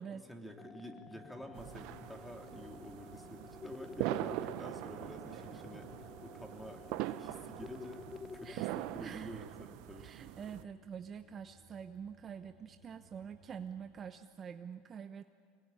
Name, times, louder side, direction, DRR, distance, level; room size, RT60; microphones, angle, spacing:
voice 1, 0.3-8.0 8.3-10.1, equal, ahead, 3 dB, 3.1 m, -50 dB
sound 1, 0.6-8.6, left 5 dB, 20° left, 0.8 m, -51 dB
sound 2, 1.5-10.6, right 16 dB, 65° right, 0.9 m, -42 dB
sound 3, 4.3-14.1, equal, 60° left, 4.7 m, -66 dB
voice 2, 8.4-9.5 10.0-15.2, right 7 dB, 30° right, 8 dB, 0.9 m, -46 dB
25.0 x 20.5 x 10.0 m, 2.1 s
supercardioid pair, 115°, 0 cm